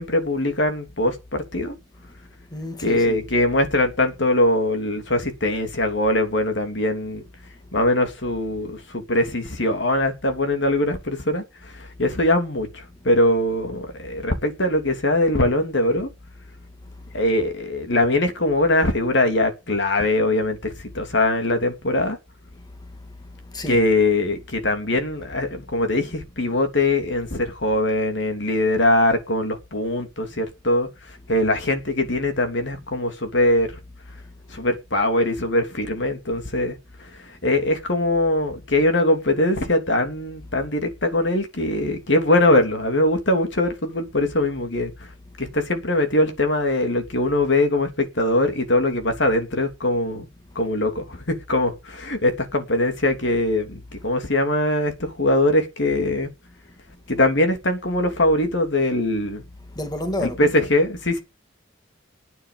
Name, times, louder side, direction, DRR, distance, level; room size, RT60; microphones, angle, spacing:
voice 1, 0.0-1.7 2.8-7.2 7.7-16.1 17.1-22.2 23.7-30.9 31.3-33.7 34.5-36.8 37.4-44.9 45.4-50.3 50.5-56.3 57.1-59.4 60.2-61.2, left 1 dB, 65° left, 3.0 m, -22 dB
voice 2, 2.5-3.2 23.5-23.8 59.8-60.4, left 1 dB, 20° left, 2.4 m, -29 dB
11.5 x 9.3 x 6.9 m
head